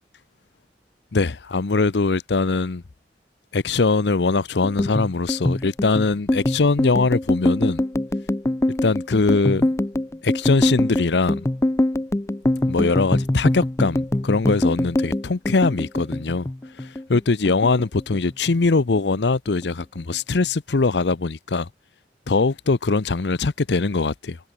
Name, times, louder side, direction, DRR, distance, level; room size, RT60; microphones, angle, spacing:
voice 1, 1.1-2.8 3.5-7.8 8.8-9.7 10.2-11.4 12.7-16.5 16.8-21.7 22.3-24.4, left 3 dB, 75° left, 0.7 m, -21 dB
sound 1, 4.6-17.2 17.5-18.5 18.8-19.2 19.5-20.1, left 1 dB, 15° left, 0.5 m, -23 dB
head